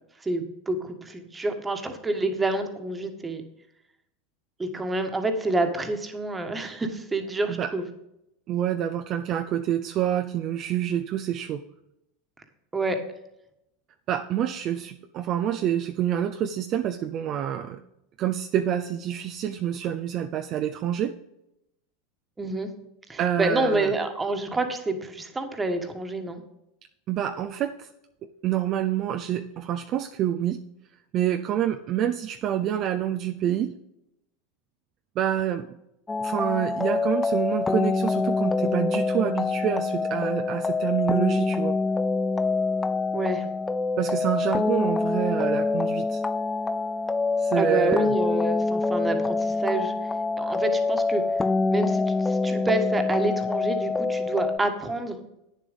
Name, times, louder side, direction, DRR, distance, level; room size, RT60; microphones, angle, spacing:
voice 1, 0.2-3.4 4.6-7.9 12.7-13.0 22.4-22.7 23.1-26.4 43.1-43.5 47.5-49.9 50.4-51.2 51.7-55.2, right 2 dB, 15° right, 6 dB, 1.5 m, -28 dB
voice 2, 8.5-11.6 14.1-17.8 18.2-21.1 23.2-23.9 27.1-27.9 28.4-30.6 31.1-33.7 35.2-35.7 36.2-41.8 44.0-46.2 47.4-48.1, right 10 dB, 45° right, 7 dB, 0.5 m, -27 dB
sound 1, 36.1-54.6, left 3 dB, 15° left, 0.3 m, -25 dB
9.2 x 7.3 x 5.2 m, 0.85 s
hypercardioid pair, 100°, 0 cm